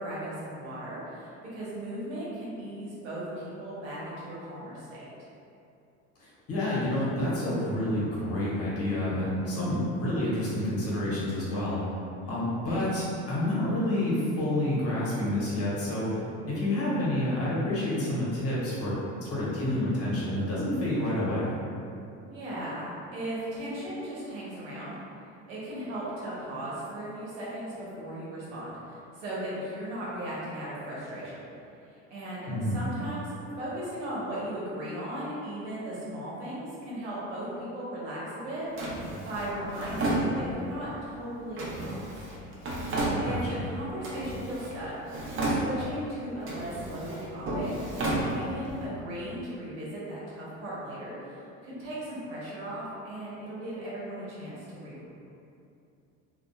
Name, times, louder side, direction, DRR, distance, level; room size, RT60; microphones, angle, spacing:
voice 1, 0.0-5.1 12.2-12.6 22.3-25.0 25.5-31.4 32.1-42.0 43.2-44.9 45.4-55.1, right 1 dB, 90° right, -8 dB, 0.9 m, -37 dB
voice 2, 6.2-11.8 12.3-16.1 16.5-21.5 32.5-32.8 43.3-43.6, left 1 dB, 40° left, -7 dB, 1.0 m, -29 dB
Drawer open or close, 38.8-40.8 41.6-43.7 44.0-44.8 45.1-46.0 46.4-48.8, right 1 dB, 35° right, 0.6 m, -32 dB
2.6 x 2.3 x 2.2 m, 2.6 s
supercardioid pair, 85°, 35 cm